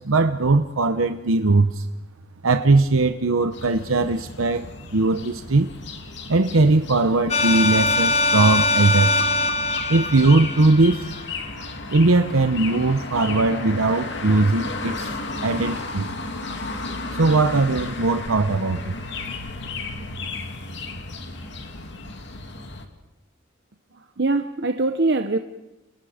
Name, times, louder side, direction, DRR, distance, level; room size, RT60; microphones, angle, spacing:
voice 1, 0.0-1.9 2.4-4.7 4.9-5.7 6.3-9.1 9.9-11.1 11.9-15.1 15.4-16.1 17.1-18.9, right 3 dB, 90° right, 8 dB, 0.9 m, -19 dB
sound 1, 3.5-22.9, left 3 dB, 60° left, 2.6 m, -34 dB
sound 2, 7.3-11.2, left 2 dB, 35° left, 1.2 m, -22 dB
voice 2, 23.9-25.4, right 3 dB, 55° right, 7 dB, 1.0 m, -23 dB
29.5 x 28.5 x 5.1 m, 0.96 s
head